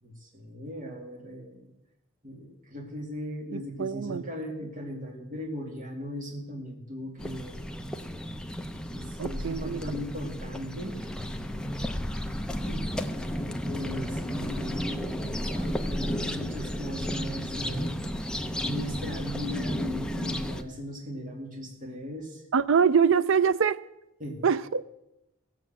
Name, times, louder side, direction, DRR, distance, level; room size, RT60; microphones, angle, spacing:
voice 1, 0.0-1.7 2.2-7.8 8.9-11.1 12.6-13.0 13.6-18.0 18.6-22.4 24.2-24.4, equal, 40° right, 2.4 m, -38 dB
voice 2, 3.5-4.2 9.2-9.8 22.5-23.8 24.4-24.9, right 6 dB, 65° right, 0.4 m, -24 dB
sound 1, 7.2-20.6, equal, 5° left, 0.6 m, -33 dB
16.0 x 7.9 x 7.5 m
head